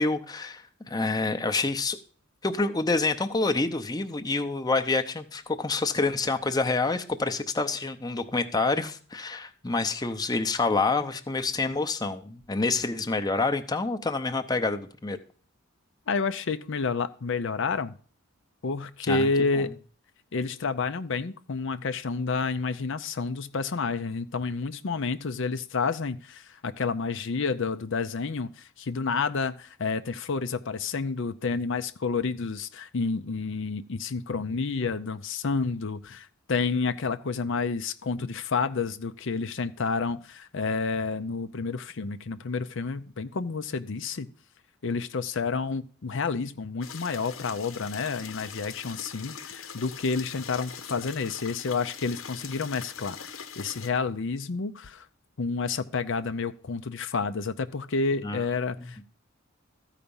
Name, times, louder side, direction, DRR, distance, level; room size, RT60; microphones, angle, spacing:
voice 1, 0.0-2.0 2.4-15.2 19.0-19.7 58.2-58.4 58.8-58.9, left 3 dB, 20° left, 0.7 m, -27 dB
voice 2, 16.1-17.9 18.6-19.7 20.3-44.3 44.8-55.1 55.4-59.0, left 4 dB, 65° left, 0.6 m, -30 dB
sound 1, 46.8-53.9, left 7 dB, 90° left, 1.1 m, -42 dB
14.0 x 5.0 x 7.0 m
head